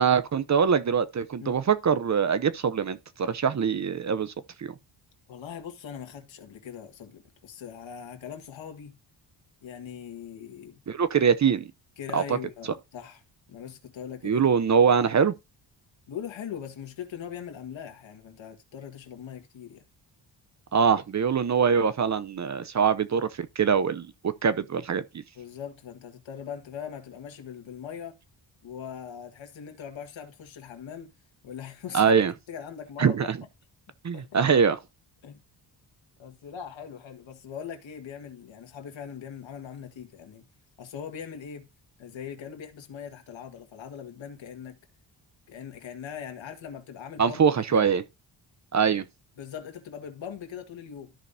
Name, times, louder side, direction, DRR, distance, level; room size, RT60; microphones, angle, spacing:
voice 1, 0.0-4.3 4.6-4.7 10.9-11.7 12.1-12.2 14.2-15.3 20.7-25.0 31.9-32.3 33.0-33.4 34.0-34.8 47.2-48.0 48.7-49.0, right 6 dB, 40° right, 0.6 m, -23 dB
voice 2, 5.3-9.0 9.6-10.8 12.0-13.2 13.5-14.4 16.1-19.8 25.4-28.2 28.6-31.1 31.4-32.2 32.5-33.3 34.1-34.4 35.2-35.4 36.2-40.4 40.8-41.7 42.0-44.8 45.5-47.4 47.7-47.9 49.4-51.1, left 8 dB, 80° left, 1.6 m, -41 dB
13.5 x 5.1 x 2.7 m
wide cardioid pair, 110°, 45 cm